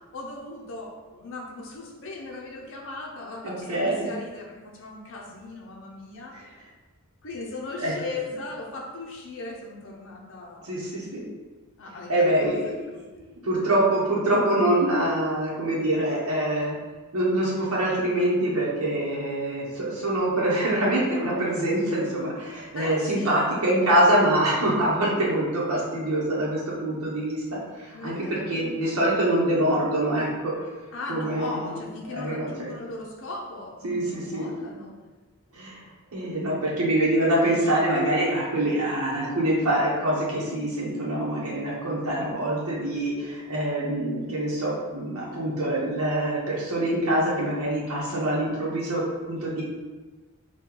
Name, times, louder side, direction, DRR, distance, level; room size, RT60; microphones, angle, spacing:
voice 1, 0.1-6.3 7.2-10.8 11.8-13.0 22.7-23.5 27.9-28.5 30.9-35.0, left 3 dB, 60° left, -2 dB, 0.6 m, -38 dB
voice 2, 3.4-4.1 6.3-6.4 7.8-7.9 10.6-11.2 12.1-16.8 17.1-30.5 31.1-31.7 32.1-32.7 33.8-34.5 35.5-35.8 36.1-49.0 49.3-49.6, right 1 dB, 70° right, -5 dB, 0.8 m, -25 dB
4.5 x 2.3 x 3.7 m, 1.3 s
head